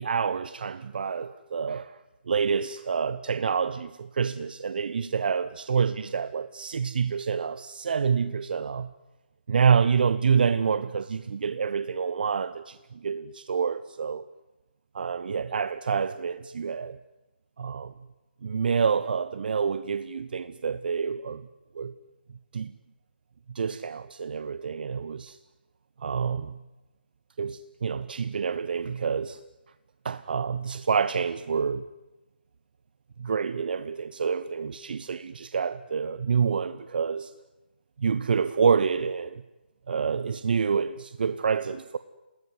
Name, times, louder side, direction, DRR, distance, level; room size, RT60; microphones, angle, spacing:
voice 1, 0.0-2.0 2.3-8.9 9.5-14.3 14.9-17.0 17.6-17.9 18.4-21.5 21.7-21.9 22.5-22.7 23.5-25.4 26.0-26.6 27.4-29.4 30.0-31.9 33.2-37.3 38.0-39.4 39.9-42.0, right 6 dB, 55° right, 1.0 m, -27 dB
28.5 x 19.5 x 9.5 m
figure-of-eight pair, 145°, 6 cm